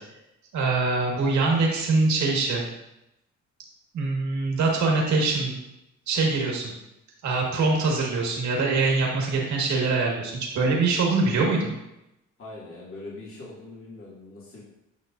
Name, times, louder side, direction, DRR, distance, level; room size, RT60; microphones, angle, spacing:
voice 1, 0.5-2.6 3.9-5.6 6.1-6.7 7.2-11.7, right 3 dB, 70° right, -1 dB, 1.8 m, -23 dB
voice 2, 12.4-14.6, left 2 dB, 45° left, -7 dB, 2.4 m, -42 dB
9.7 x 5.6 x 2.6 m, 0.89 s
cardioid pair, 90°, 30 cm